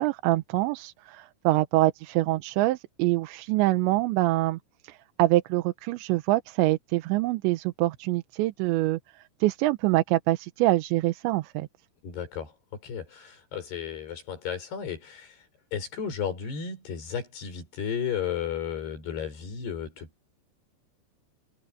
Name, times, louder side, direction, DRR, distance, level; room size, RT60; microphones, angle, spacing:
voice 1, 0.0-11.7, right 18 dB, 85° right, 3.2 m, -25 dB
voice 2, 12.0-12.5 12.8-15.4 15.7-20.3, left 7 dB, 65° left, 7.6 m, -34 dB
omnidirectional pair, 5.1 m